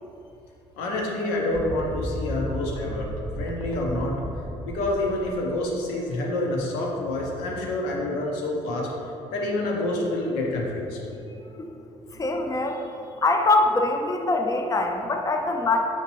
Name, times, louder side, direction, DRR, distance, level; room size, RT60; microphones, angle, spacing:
voice 1, 0.8-3.1 3.4-4.1 4.6-8.9 9.3-11.0, left 1 dB, 80° left, -2 dB, 0.7 m, -27 dB
sound 1, 1.5-5.5, equal, 35° right, 0.5 m, -34 dB
voice 2, 11.4-11.7 12.1-15.8, left 2 dB, 20° left, 3 dB, 0.5 m, -24 dB
5.8 x 2.9 x 2.9 m, 2.8 s
hypercardioid pair, 55°, 16 cm